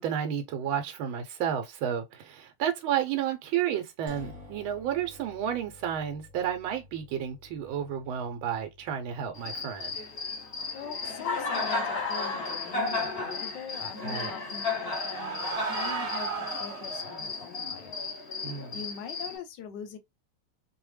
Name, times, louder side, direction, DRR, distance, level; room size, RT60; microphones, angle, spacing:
voice 1, 0.0-10.0 14.0-14.3 18.4-18.8, right 9 dB, 85° right, 1.4 m, -31 dB
sound 1, 4.1-13.8, left 2 dB, 45° right, 1.1 m, -53 dB
Cricket, 9.3-19.4, left 3 dB, 50° left, 0.7 m, -34 dB
voice 2, 10.7-17.9 18.7-20.0, left 7 dB, 75° left, 1.1 m, -42 dB
sound 2, 14.4-17.3, right 5 dB, 65° right, 1.4 m, -36 dB
3.3 x 2.1 x 3.1 m
omnidirectional pair, 2.2 m